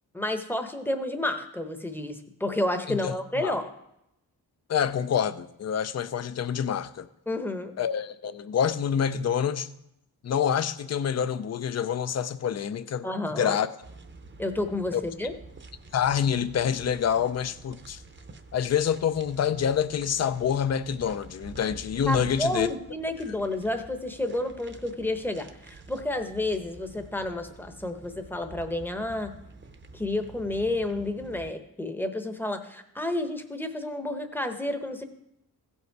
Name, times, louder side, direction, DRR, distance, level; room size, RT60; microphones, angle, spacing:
voice 1, 0.1-3.7 7.3-7.7 13.0-13.6 14.4-15.3 22.1-29.3 29.9-35.0, left 1 dB, 5° left, 0.8 m, -30 dB
voice 2, 2.9-3.5 4.7-7.1 7.8-9.7 10.2-13.1 13.4-13.7 14.9-15.0 15.9-18.0 18.5-22.7, left 8 dB, 40° left, 0.5 m, -27 dB
sound 1, 13.8-31.5, right 3 dB, 30° right, 0.7 m, -48 dB
16.0 x 5.4 x 4.6 m
wide cardioid pair, 120°, 39 cm